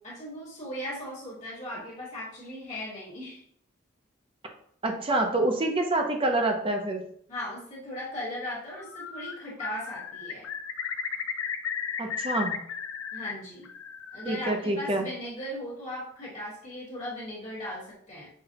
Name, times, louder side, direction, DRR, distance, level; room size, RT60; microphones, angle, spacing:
voice 1, 0.0-3.4 7.3-10.5 13.1-13.7 14.1-18.3, left 1 dB, 35° left, -6 dB, 1.4 m, -38 dB
voice 2, 4.8-7.0 12.0-12.6 14.3-15.1, right 2 dB, 25° right, 3 dB, 0.5 m, -26 dB
Bird, 8.8-9.3 9.6-13.3 13.6-14.4, left 7 dB, 85° left, 0.4 m, -34 dB
5.6 x 2.2 x 2.8 m, 0.67 s
head